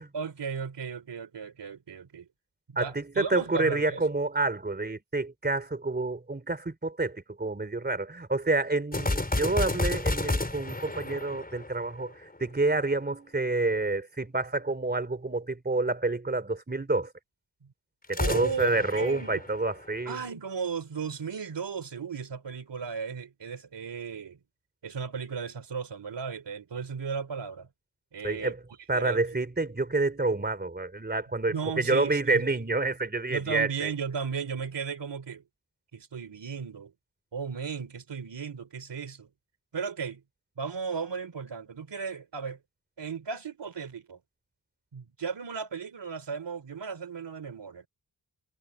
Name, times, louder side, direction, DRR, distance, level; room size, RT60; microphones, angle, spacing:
voice 1, 0.1-2.3 2.8-4.0 17.6-17.7 18.2-19.4 20.0-24.4 24.8-27.7 28.1-28.5 28.9-29.2 31.5-32.5 33.3-35.4 35.9-36.9 37.3-39.3 39.7-40.2 40.6-42.6 43.0-44.2 44.9-47.9, right 6 dB, 70° right, 3.2 m, -35 dB
voice 2, 2.8-17.1 18.1-20.2 28.2-28.6 28.9-33.9, right 2 dB, 20° right, 3.2 m, -28 dB
sound 1, 8.9-12.4 18.0-20.1, left 2 dB, 20° left, 5.4 m, -31 dB
wide cardioid pair, 105°, 43 cm